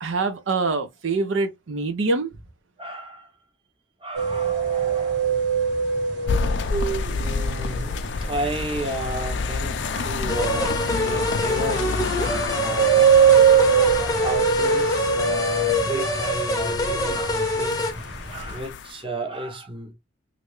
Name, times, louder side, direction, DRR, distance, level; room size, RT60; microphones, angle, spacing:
voice 1, 0.0-2.3, right 3 dB, 80° right, 0.6 m, -25 dB
voice 2, 2.8-3.3 4.0-5.4 6.2-6.4 7.1-11.9 12.2-17.9 18.3-19.9, right 1 dB, 25° right, 0.8 m, -33 dB
sound 1, 4.1-18.6, right 7 dB, 60° right, 1.4 m, -23 dB
sound 2, 6.3-19.0, left 4 dB, 65° left, 0.4 m, -29 dB
sound 3, 10.3-17.9, left 1 dB, 15° left, 0.7 m, -26 dB
3.2 x 2.5 x 3.0 m
head